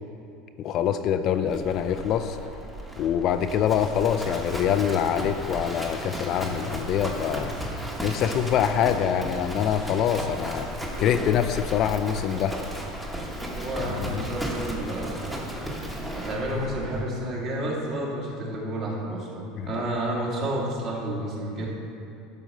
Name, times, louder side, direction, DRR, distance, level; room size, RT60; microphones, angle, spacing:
voice 1, 0.6-2.4 3.0-7.5 8.0-10.7 11.0-12.6 13.9-14.2 19.6-19.8, left 9 dB, 45° left, 9 dB, 0.4 m, -25 dB
Livestock farm animals working animals, 1.5-17.0, equal, 10° right, 1.2 m, -35 dB
voice 2, 13.4-21.7, right 1 dB, 40° right, -3 dB, 2.2 m, -31 dB
12.0 x 4.4 x 6.5 m, 2.7 s
supercardioid pair, 145°, 0 cm